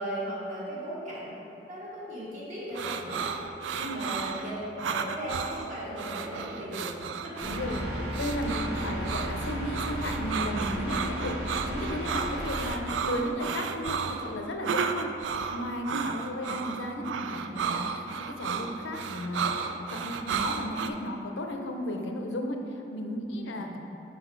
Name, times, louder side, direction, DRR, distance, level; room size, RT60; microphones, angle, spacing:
voice 1, 0.0-3.3 3.7-4.5 4.8-6.9 7.2-7.3 16.0-16.5 23.5-23.7, equal, 40° right, -8 dB, 1.3 m, -37 dB
sound 1, 2.7-20.9, right 6 dB, 80° right, 0.3 m, -33 dB
voice 2, 7.4-7.9 8.2-23.8, left 1 dB, 85° left, 3 dB, 0.6 m, -34 dB
sound 2, 7.4-12.7, equal, 65° right, 0.9 m, -34 dB
6.0 x 4.0 x 4.5 m, 2.9 s
head